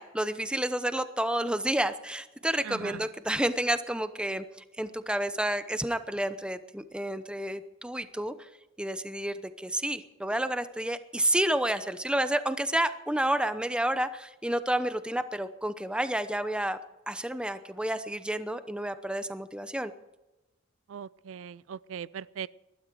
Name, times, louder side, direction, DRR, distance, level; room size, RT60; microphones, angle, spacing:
voice 1, 0.0-4.4 4.8-8.3 8.8-16.8 17.1-19.9, right 1 dB, 5° right, 11 dB, 0.7 m, -30 dB
voice 2, 2.6-3.1 20.9-22.5, right 8 dB, 80° right, 20 dB, 0.4 m, -39 dB
20.0 x 13.0 x 4.7 m, 1.0 s
head